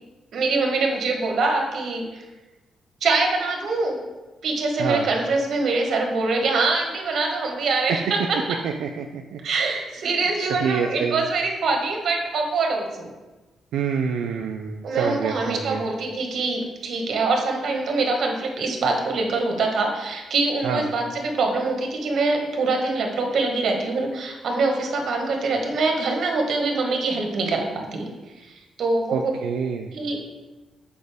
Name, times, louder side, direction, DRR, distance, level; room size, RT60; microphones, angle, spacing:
voice 1, 0.3-2.0 3.0-4.0 4.4-8.6 9.4-13.1 14.8-28.1 28.3-29.3 29.9-30.2, right 3 dB, 60° right, 2 dB, 1.2 m, -24 dB
voice 2, 8.6-9.4 10.1-11.2 13.7-15.9 20.6-20.8 29.1-29.9, right 6 dB, 90° right, 3 dB, 0.4 m, -27 dB
6.5 x 5.0 x 3.4 m, 1.1 s
cardioid pair, 115°, 0 cm